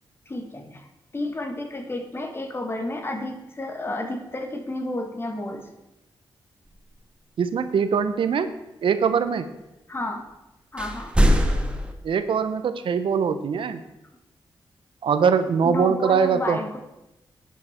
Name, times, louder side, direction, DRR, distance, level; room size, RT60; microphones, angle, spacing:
voice 1, 0.3-0.9 1.1-5.7 9.9-10.3 10.7-11.1 15.6-16.8, left 1 dB, 25° left, 5 dB, 1.7 m, -31 dB
voice 2, 7.4-8.5 8.8-9.5 12.0-13.8 15.0-16.6, right 6 dB, 80° right, 10 dB, 0.8 m, -22 dB
sound 1, 10.8-11.9, equal, 10° right, 1.4 m, -20 dB
11.0 x 9.3 x 4.4 m, 0.96 s
cardioid pair, 85°, 9 cm